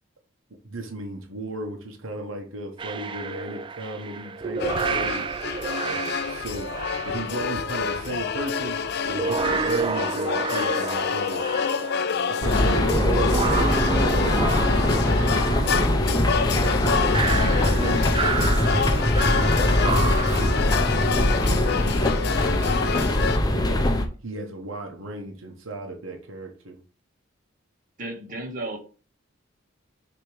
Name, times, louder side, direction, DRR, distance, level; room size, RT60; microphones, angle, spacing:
voice 1, 0.6-6.7 7.0-8.8 9.1-11.6 12.3-16.3 17.4-23.1 23.6-23.8 24.2-26.8, right 2 dB, 85° right, 1.1 m, -36 dB
sound 1, 2.8-8.2 8.9-20.5, right 5 dB, 25° right, 0.3 m, -30 dB
sound 2, 4.6-23.4, left 6 dB, 55° left, 0.4 m, -28 dB
sound 3, 12.4-24.1, left 1 dB, 20° left, 0.7 m, -22 dB
voice 2, 28.0-28.8, right 2 dB, 45° right, 1.5 m, -33 dB
6.7 x 3.0 x 4.8 m
head